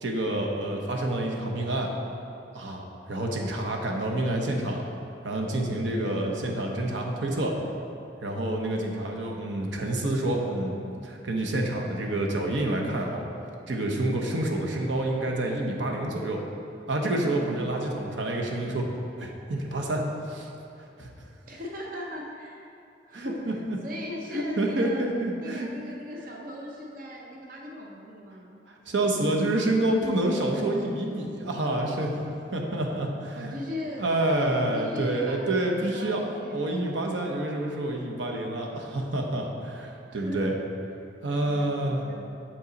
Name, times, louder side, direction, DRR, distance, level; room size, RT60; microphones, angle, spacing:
voice 1, 0.0-1.9 2.5-4.8 5.2-7.5 8.2-13.2 13.7-16.4 16.9-18.9 19.2-20.5 21.0-21.1 23.1-23.8 24.3-25.7 28.7-32.1 32.5-33.6 34.0-36.2 36.5-40.5 41.2-42.0, right 1 dB, 85° right, 0 dB, 0.9 m, -28 dB
voice 2, 8.9-9.2 17.4-17.9 21.5-22.7 23.0-25.0 25.4-28.6 33.3-34.1 34.7-36.9 40.1-40.5 41.4-42.2, left 1 dB, 50° right, -1 dB, 0.6 m, -39 dB
7.0 x 5.6 x 4.0 m, 2.7 s
head